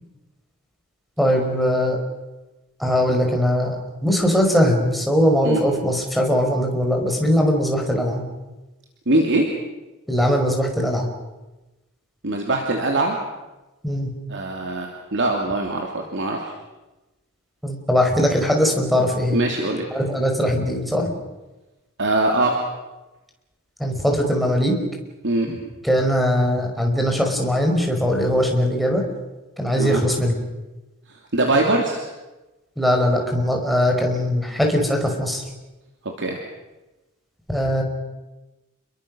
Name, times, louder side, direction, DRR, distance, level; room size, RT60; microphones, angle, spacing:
voice 1, 1.2-2.0 2.8-8.2 10.1-11.1 13.8-14.1 17.6-19.4 19.9-21.1 23.8-24.7 25.5-25.6 25.8-29.0 29.6-30.4 32.8-35.4 37.5-37.8, equal, ahead, 1 dB, 4.9 m, -20 dB
voice 2, 9.1-9.5 12.2-13.2 14.3-16.5 19.3-19.9 22.0-22.6 25.2-25.5 29.8-30.0 31.3-32.0 36.2-36.4, right 2 dB, 55° right, 1 dB, 3.0 m, -22 dB
29.5 x 22.0 x 6.4 m, 1.1 s
head